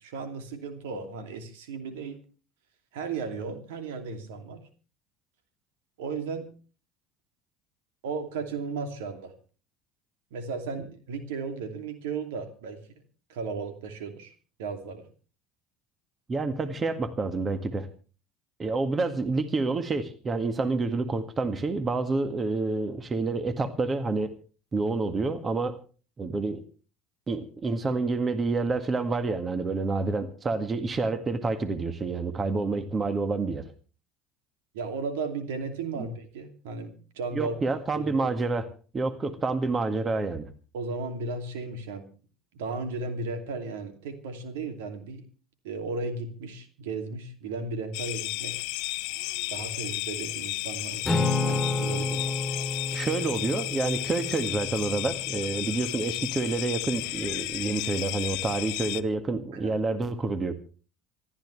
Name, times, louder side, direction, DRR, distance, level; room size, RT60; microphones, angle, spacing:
voice 1, 0.0-2.2 2.9-4.6 6.0-6.5 8.0-9.3 10.3-12.8 13.3-14.3 14.6-15.1 34.7-37.7 37.9-38.3 40.7-42.1 42.5-45.2 45.6-48.5 49.5-52.3 59.5-59.7, right 4 dB, 75° right, 7 dB, 2.7 m, -35 dB
voice 2, 16.3-17.9 18.6-24.3 24.7-25.8 26.2-26.6 27.3-33.7 36.0-36.1 37.3-38.7 38.9-40.5 52.9-60.5, right 3 dB, 30° right, 10 dB, 1.9 m, -28 dB
sound 1, 47.9-59.0, left 21 dB, 65° left, 0.7 m, -33 dB
Acoustic guitar / Strum, 51.0-55.5, left 3 dB, 5° left, 3.2 m, -30 dB
27.0 x 12.5 x 3.3 m, 0.38 s
hypercardioid pair, 65°, 0 cm